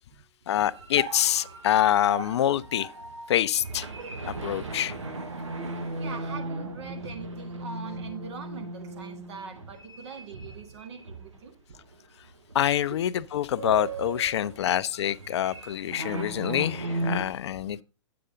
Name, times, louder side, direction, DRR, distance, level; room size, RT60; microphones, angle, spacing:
voice 1, 0.5-2.9 3.3-3.9 4.3-4.9 12.5-17.8, left 11 dB, 65° left, 0.4 m, -26 dB
sound 1, 0.7-11.4 11.8-11.9 12.5-12.9 13.2-17.3, right 2 dB, 90° right, 1.2 m, -37 dB
voice 2, 5.8-11.5 12.9-13.0 14.4-14.5 15.5-15.7 16.1-16.7, right 5 dB, 65° right, 1.8 m, -42 dB
8.5 x 6.7 x 3.8 m
hypercardioid pair, 120°, 15 cm